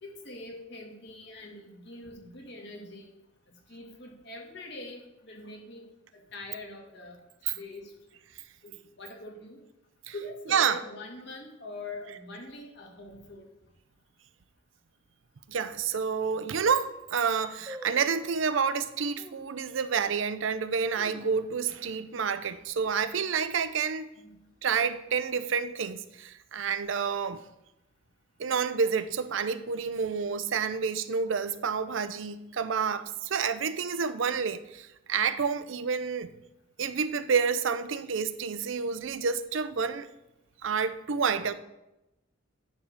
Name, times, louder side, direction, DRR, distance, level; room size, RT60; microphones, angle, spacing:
voice 1, 0.0-3.1 3.7-5.8 6.3-7.2 7.5-7.9 8.6-9.6 10.1-13.5 24.2-24.3, left 2 dB, 60° left, 1.8 m, -43 dB
voice 2, 15.5-24.1 24.6-27.4 28.4-36.3 36.8-40.1 40.6-41.5, right 6 dB, 75° right, 0.5 m, -29 dB
sound 1, 15.7-15.8 16.3-16.4 16.7-17.0 17.7-18.4 19.2-19.6 20.1-20.2 20.7-21.8 22.1-22.2 22.6-22.9 23.3-23.7 24.3-25.1 25.3-25.4, equal, 20° right, 0.8 m, -47 dB
10.0 x 3.5 x 6.4 m
head